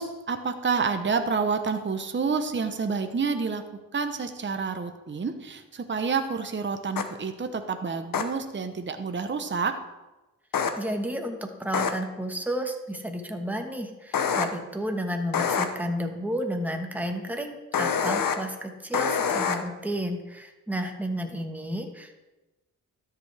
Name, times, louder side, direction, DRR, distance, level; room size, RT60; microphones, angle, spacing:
voice 1, 0.0-3.6 3.9-9.8, right 5 dB, 35° right, 8 dB, 0.8 m, -29 dB
sound 1, 7.0-7.1 8.1-8.2 10.5-10.7 11.7-11.9 14.1-14.4 15.3-15.7 17.7-18.4 18.9-19.6, left 7 dB, 80° left, 0.8 m, -25 dB
voice 2, 10.8-22.2, equal, 5° right, 4 dB, 1.3 m, -32 dB
12.5 x 6.9 x 3.4 m, 1.1 s
cardioid pair, 65°, 33 cm